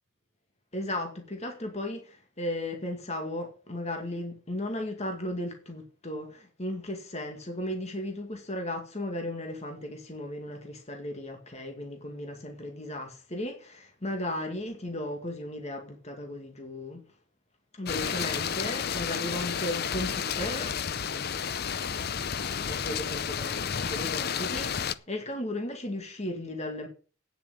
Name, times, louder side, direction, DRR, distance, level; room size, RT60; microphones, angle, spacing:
voice 1, 0.7-17.0 17.8-20.8 21.0-21.5 22.7-26.9, left 1 dB, 30° left, 2.1 m, -36 dB
sound 1, 17.9-24.9, left 7 dB, 50° left, 0.6 m, -31 dB
9.6 x 7.1 x 8.5 m
head